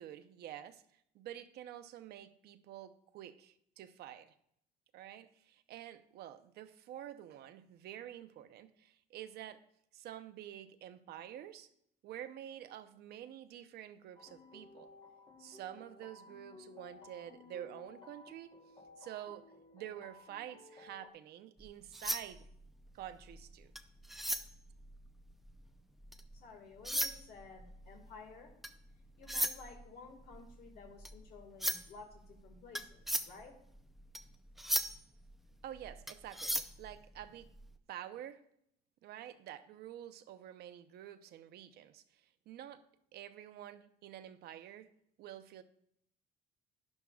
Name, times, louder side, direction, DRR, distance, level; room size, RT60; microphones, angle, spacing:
voice 1, 0.0-4.3 4.9-9.6 9.9-11.7 12.0-14.9 15.4-18.6 19.0-22.5 22.9-23.7 35.6-37.5 37.9-38.4 39.0-42.8 43.1-44.9 45.2-45.6, right 11 dB, 75° right, 10 dB, 0.8 m, -49 dB
sound 1, 14.2-21.1, left 3 dB, 30° left, 1.2 m, -57 dB
sound 2, 21.6-26.4 26.7-37.7, equal, ahead, 0.6 m, -39 dB
voice 2, 26.3-28.5 29.0-33.6, left 4 dB, 65° left, 1 dB, 1.9 m, -54 dB
11.5 x 11.0 x 2.4 m, 0.71 s
cardioid pair, 110°, 17 cm